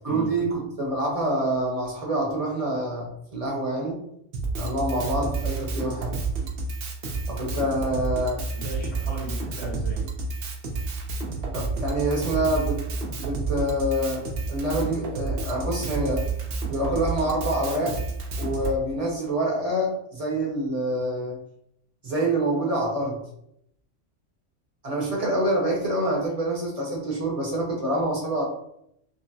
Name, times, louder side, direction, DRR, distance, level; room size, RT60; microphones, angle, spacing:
voice 1, 0.0-4.0 4.5-6.2 7.3-8.4 9.1-9.2 11.5-12.8 13.2-16.2 16.7-18.0 18.4-21.4 22.0-23.2 24.8-28.4, right 1 dB, 30° right, -3 dB, 1.0 m, -26 dB
Drum kit, 4.3-18.8, right 3 dB, 55° right, 0.7 m, -30 dB
voice 2, 8.5-10.0, left 1 dB, 60° left, -6 dB, 1.4 m, -38 dB
5.2 x 2.0 x 2.6 m, 0.74 s
omnidirectional pair, 1.3 m